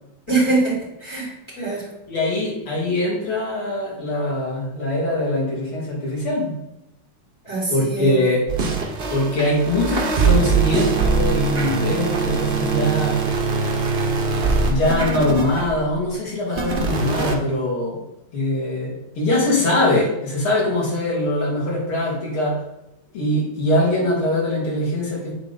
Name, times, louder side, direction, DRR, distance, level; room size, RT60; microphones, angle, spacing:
voice 1, 0.3-1.9 7.4-8.2, right 3 dB, 15° left, -7 dB, 2.7 m, -23 dB
voice 2, 2.1-6.6 7.7-8.5 9.1-13.2 14.7-18.0 18.3-22.6 23.1-25.3, left 1 dB, 85° left, -4 dB, 3.0 m, -22 dB
sound 1, 8.5-15.9 16.5-17.3, right 5 dB, 80° right, 0.5 m, -22 dB
8.0 x 4.0 x 4.0 m, 0.92 s
omnidirectional pair, 2.3 m